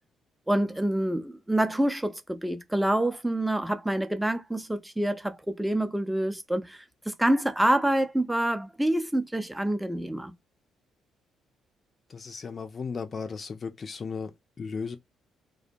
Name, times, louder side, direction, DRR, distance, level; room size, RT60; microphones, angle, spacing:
voice 1, 0.5-10.3, right 1 dB, 5° right, 0.6 m, -27 dB
voice 2, 12.1-15.0, left 5 dB, 40° left, 0.4 m, -36 dB
2.4 x 2.1 x 2.6 m
figure-of-eight pair, 45°, 0 cm